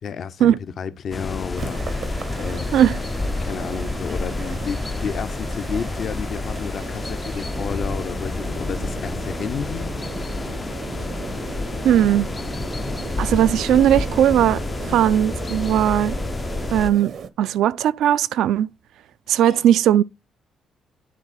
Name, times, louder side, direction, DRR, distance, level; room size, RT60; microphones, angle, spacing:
voice 1, 0.0-2.7 3.4-9.9 19.5-19.6, left 6 dB, 60° left, 0.7 m, -31 dB
sound 1, 1.1-16.9, left 3 dB, 30° left, 0.4 m, -29 dB
sound 2, 1.6-17.3, right 6 dB, 60° right, 0.8 m, -36 dB
voice 2, 11.8-12.3 13.2-14.6 14.9-16.2 16.7-18.7 19.3-20.0, right 11 dB, 80° right, 0.4 m, -18 dB
9.9 x 3.7 x 4.2 m
cardioid pair, 90°, 0 cm